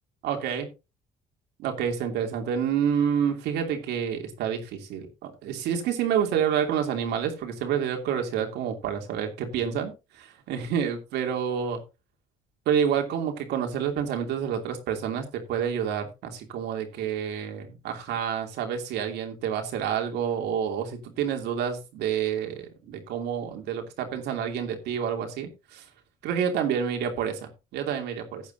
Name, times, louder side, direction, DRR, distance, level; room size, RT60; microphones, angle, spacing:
voice 1, 0.2-0.7 1.6-11.8 12.7-25.8 26.2-28.4, right 8 dB, 85° right, 4 dB, 2.9 m, -28 dB
15.0 x 9.3 x 2.7 m, 0.27 s
cardioid pair, 110°, 17 cm